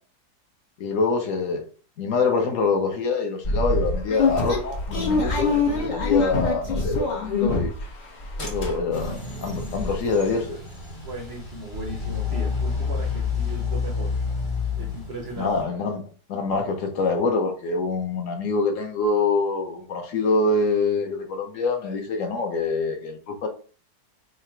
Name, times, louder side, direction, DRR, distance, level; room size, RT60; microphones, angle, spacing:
voice 1, 0.8-1.6 2.0-7.7 8.4-10.6 15.4-16.0 16.3-23.5, left 3 dB, 65° left, 3 dB, 0.8 m, -25 dB
sound 1, 3.4-7.9 8.2-9.1 9.4-9.5 9.7-10.0, left 3 dB, 90° left, 0.4 m, -24 dB
sound 2, 8.9-15.6, left 5 dB, 35° left, 0.5 m, -29 dB
voice 2, 11.0-14.1 14.8-15.5, right 2 dB, 75° right, 0 dB, 0.6 m, -37 dB
3.7 x 2.1 x 4.3 m, 0.40 s
omnidirectional pair, 2.0 m